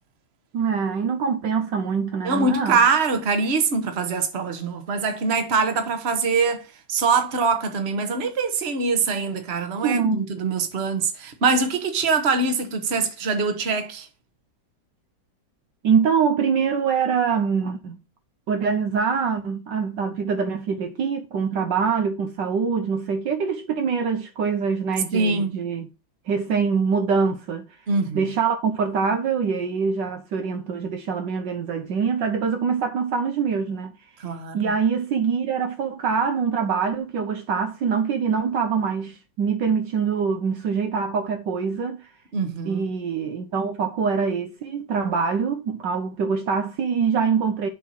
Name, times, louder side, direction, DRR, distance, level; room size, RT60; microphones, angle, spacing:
voice 1, 0.5-2.8 9.8-10.3 15.8-18.0 18.5-25.9 26.3-27.7 28.1-34.0 34.5-42.1 42.6-47.7, right 6 dB, 65° right, 1.4 m, -24 dB
voice 2, 2.2-6.6 6.9-14.1 25.1-25.6 27.9-28.3 34.2-34.7 42.3-42.9, right 4 dB, 35° right, 1.3 m, -23 dB
7.4 x 4.5 x 5.6 m
omnidirectional pair, 2.2 m